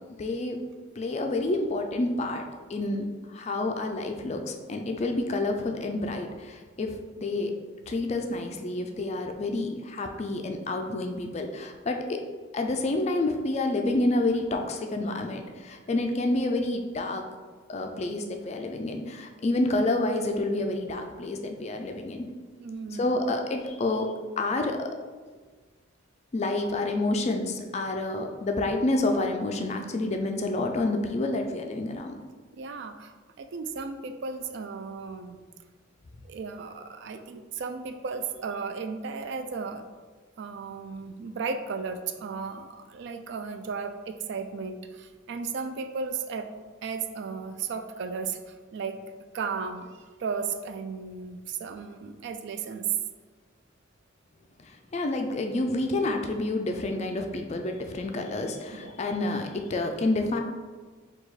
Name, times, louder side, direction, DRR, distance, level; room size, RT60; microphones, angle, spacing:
voice 1, 0.2-0.6 1.0-2.4 2.7-7.5 7.9-12.2 12.5-17.2 17.7-22.2 22.9-24.1 24.4-24.9 26.3-32.2 54.6-60.4, left 2 dB, 35° left, 4 dB, 0.3 m, -29 dB
voice 2, 22.6-23.2 32.5-35.4 36.2-39.8 40.4-46.5 46.8-49.0 49.3-52.9 58.7-58.9, right 5 dB, 55° right, 8 dB, 0.3 m, -35 dB
4.8 x 2.3 x 4.0 m, 1.4 s
head